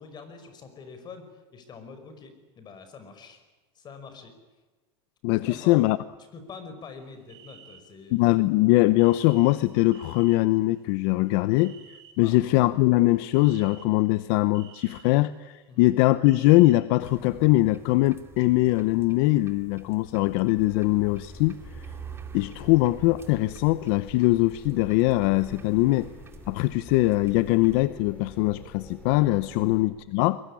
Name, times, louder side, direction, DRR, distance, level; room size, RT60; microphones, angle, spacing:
voice 1, 0.0-3.4 3.8-4.4 5.5-5.8 6.3-8.6 12.2-12.5 15.7-15.9 29.5-29.7, left 5 dB, 30° left, 9 dB, 5.4 m, -45 dB
voice 2, 5.2-6.0 8.1-11.7 12.2-21.9 22.3-26.1 26.5-30.4, left 19 dB, 65° left, 15 dB, 0.8 m, -22 dB
sound 1, 7.3-8.0 9.0-10.4 10.8-12.1 12.8-12.9 13.3-14.1 14.5-15.0 15.8-16.7, right 9 dB, 75° right, 4.2 m, -51 dB
sound 2, 17.0-27.9, right 6 dB, 20° right, 2.6 m, -48 dB
sound 3, 20.5-29.8, left 2 dB, 10° left, 5.2 m, -46 dB
23.0 x 21.0 x 10.0 m, 1.2 s
supercardioid pair, 130°, 14 cm